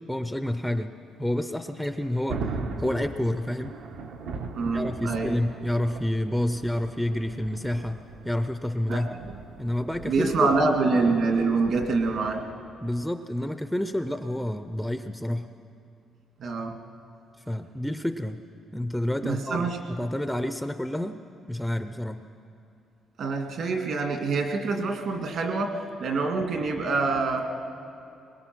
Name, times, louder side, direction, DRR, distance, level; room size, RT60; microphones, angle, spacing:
voice 1, 0.1-0.9 1.2-2.5 2.8-3.8 4.7-9.1 9.6-10.5 12.8-15.5 17.5-18.4 18.7-21.2 21.5-22.2, left 1 dB, ahead, 9 dB, 0.4 m, -29 dB
Thunder, 1.7-12.4, right 4 dB, 80° right, 1.4 m, -39 dB
voice 2, 4.5-5.4 8.9-9.0 10.0-12.4 16.4-16.7 19.2-19.8 23.2-27.4, right 3 dB, 55° right, 3 dB, 2.2 m, -26 dB
22.0 x 21.0 x 6.1 m, 2.7 s
cardioid pair, 175°, 0 cm